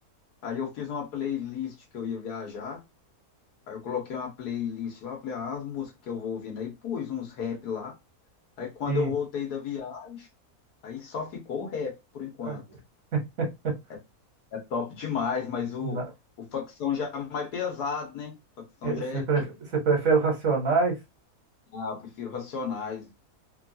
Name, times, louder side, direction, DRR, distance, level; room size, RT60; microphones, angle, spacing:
voice 1, 0.4-2.8 3.7-7.9 8.6-10.3 10.8-12.6 14.5-16.0 16.5-18.3 18.8-19.5 21.7-23.1, left 7 dB, 90° left, 1.6 m, -33 dB
voice 2, 13.1-13.7 15.8-16.0 18.8-19.4 19.7-20.9, right 4 dB, 55° right, 1.5 m, -25 dB
3.6 x 2.3 x 2.7 m
omnidirectional pair, 1.6 m